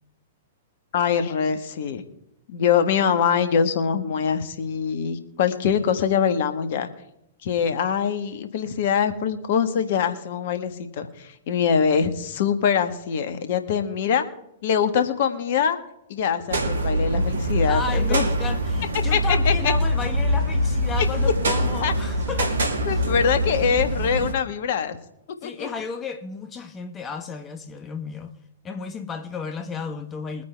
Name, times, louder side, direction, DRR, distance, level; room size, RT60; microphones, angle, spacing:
voice 1, 0.9-2.0 2.5-6.9 7.4-14.2 14.6-15.8 16.1-18.3 19.1-19.7 21.0-21.1 21.8-21.9 22.9-25.0 25.4-25.7, left 7 dB, 55° left, 1.5 m, -23 dB
sound 1, 16.5-24.3, equal, 70° right, 2.0 m, -23 dB
voice 2, 17.6-22.6 22.9-23.0 25.4-28.3 28.6-30.4, left 5 dB, 20° left, 1.2 m, -33 dB
22.5 x 9.3 x 3.5 m
figure-of-eight pair, 105°, 0 cm